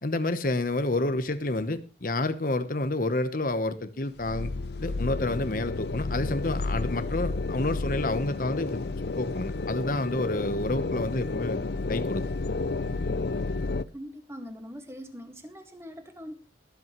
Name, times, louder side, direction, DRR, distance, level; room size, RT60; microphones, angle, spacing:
voice 1, 0.0-4.5 4.8-8.8 9.2-11.6 11.9-12.2, left 2 dB, 50° left, 1.1 m, -29 dB
sound 1, 4.2-13.8, left 3 dB, 65° left, 0.6 m, -31 dB
voice 2, 13.9-16.3, equal, 15° right, 1.9 m, -42 dB
23.0 x 8.6 x 3.1 m
head